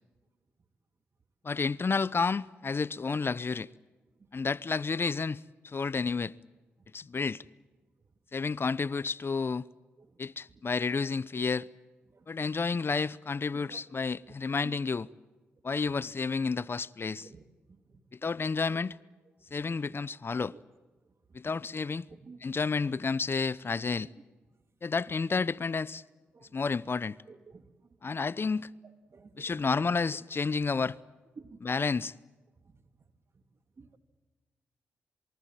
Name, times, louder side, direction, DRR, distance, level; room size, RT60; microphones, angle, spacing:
voice 1, 1.4-3.7 4.3-6.3 6.9-7.4 8.3-9.7 10.2-11.6 12.3-15.1 15.6-17.3 18.2-19.0 19.5-20.5 21.3-22.0 22.4-24.1 24.8-26.0 26.5-27.2 28.0-28.7 29.4-31.0 31.6-32.1, left 4 dB, 45° left, 0.7 m, -30 dB
voice 2, 22.1-22.4 24.0-24.1 26.3-26.6 27.3-27.6 29.1-29.5 31.4-31.6 32.6-32.7 33.8-34.0, right 4 dB, 50° right, 2.8 m, -51 dB
27.5 x 23.5 x 7.6 m
supercardioid pair, 40°, 5 cm